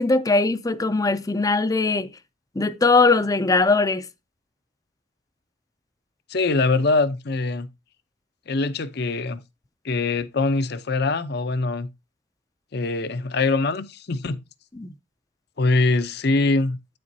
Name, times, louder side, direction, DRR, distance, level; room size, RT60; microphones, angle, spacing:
voice 1, 0.0-2.1 2.6-4.0 14.8-14.9, left 3 dB, 20° left, 0.5 m, -20 dB
voice 2, 6.3-7.7 8.5-9.4 9.8-11.9 12.7-14.4 15.6-17.0, left 3 dB, 60° left, 0.7 m, -23 dB
9.1 x 7.6 x 2.7 m
head